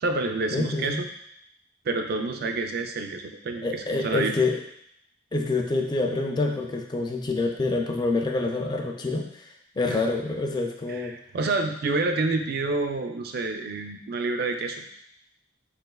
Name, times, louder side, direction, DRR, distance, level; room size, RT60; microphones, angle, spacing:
voice 1, 0.0-1.0 1.9-4.4 9.9-10.0 10.9-14.9, right 3 dB, 50° right, 5 dB, 0.4 m, -28 dB
voice 2, 0.5-1.0 3.6-4.6 5.3-9.5 9.8-11.2, left 3 dB, 20° left, 2 dB, 0.3 m, -27 dB
4.7 x 3.2 x 2.2 m, 0.73 s
head